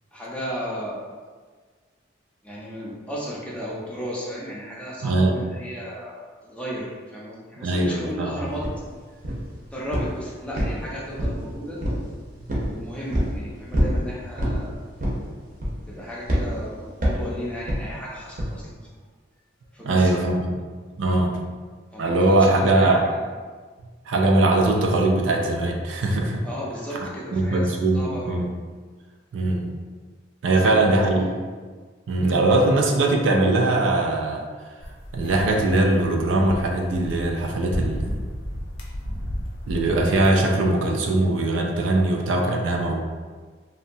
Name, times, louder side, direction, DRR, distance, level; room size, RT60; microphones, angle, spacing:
voice 1, 0.1-1.1 2.4-8.7 9.7-11.8 12.6-14.8 15.9-18.8 19.7-20.1 21.9-23.2 26.4-28.4 30.6-31.3, equal, 5° left, -6 dB, 0.5 m, -34 dB
voice 2, 5.0-5.3 7.6-8.3 19.8-20.6 21.0-21.4 22.0-23.0 24.1-26.4 27.3-28.5 29.3-29.7 30.4-31.2 32.1-34.4 35.1-38.2 39.7-43.0, right 2 dB, 90° right, 2 dB, 0.4 m, -21 dB
sound 1, 8.6-8.8 9.2-9.6 9.9-10.2 10.6-11.5 11.8-12.1 12.5-12.7 13.1-13.3 13.7-14.0 14.4-14.6 15.0-15.3 15.6-15.9 16.3-16.5 17.0-17.3 17.7-17.9 18.4-18.5, equal, 45° right, 0.6 m, -24 dB
sound 2, 34.8-40.3, equal, 80° left, 0.5 m, -33 dB
2.7 x 2.2 x 2.6 m, 1.5 s
head